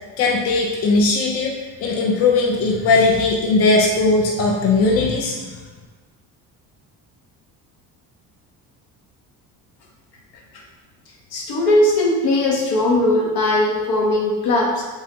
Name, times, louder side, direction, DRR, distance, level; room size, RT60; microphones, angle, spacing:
voice 1, 0.2-5.5, left 3 dB, 40° left, 0 dB, 0.4 m, -18 dB
voice 2, 11.3-14.8, left 1 dB, 65° left, -1 dB, 0.8 m, -19 dB
3.5 x 2.0 x 2.8 m, 1.4 s
supercardioid pair, 80°, 40 cm